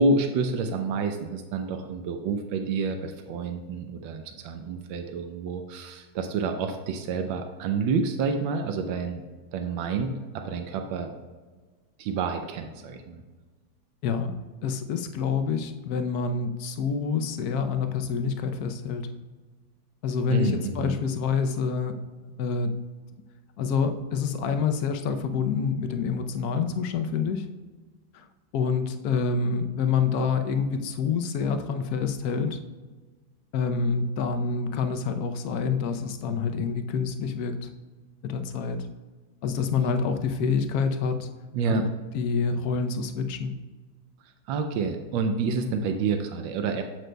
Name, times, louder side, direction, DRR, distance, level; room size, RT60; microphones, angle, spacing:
voice 1, 0.0-9.2 9.5-11.1 12.0-13.2 20.3-21.0 41.5-41.8 44.5-46.8, right 4 dB, 90° right, 5 dB, 1.4 m, -28 dB
voice 2, 14.6-19.1 20.0-21.9 22.2-22.7 23.6-27.5 28.1-28.2 28.5-32.6 33.5-37.7 38.2-38.8 39.4-41.3 41.7-41.9 42.1-43.5, left 5 dB, 65° left, 7 dB, 1.1 m, -27 dB
9.0 x 7.7 x 2.2 m, 1.3 s
omnidirectional pair, 2.1 m